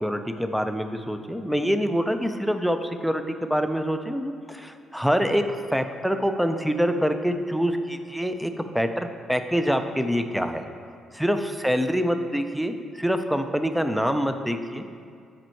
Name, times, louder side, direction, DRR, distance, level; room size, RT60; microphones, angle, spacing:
voice 1, 0.0-10.6 11.1-14.8, equal, ahead, 7 dB, 0.4 m, -25 dB
9.0 x 5.2 x 4.5 m, 2.3 s
cardioid pair, 150°, 0 cm